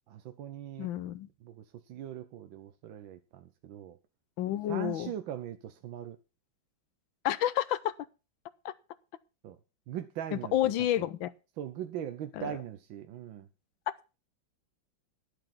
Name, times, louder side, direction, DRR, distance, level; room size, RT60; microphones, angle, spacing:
voice 1, 0.1-0.9 1.4-4.0 4.7-6.2 9.4-9.6 9.9-11.1 11.6-13.5, right 10 dB, 80° right, 1.6 m, -40 dB
voice 2, 0.8-1.3 4.4-5.1 7.2-7.9 8.6-8.7 10.5-11.3 12.4-12.5, left 12 dB, 85° left, 1.5 m, -29 dB
11.0 x 7.8 x 6.0 m
omnidirectional pair, 2.1 m